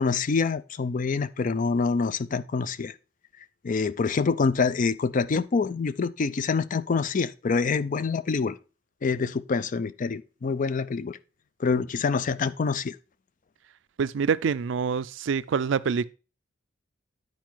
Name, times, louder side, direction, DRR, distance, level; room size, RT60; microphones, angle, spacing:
voice 1, 0.0-2.9 3.6-8.6 9.0-11.2 11.6-13.0, left 4 dB, 40° left, 0.4 m, -26 dB
voice 2, 14.0-16.1, right 6 dB, 65° right, 0.4 m, -26 dB
9.3 x 4.7 x 4.5 m
head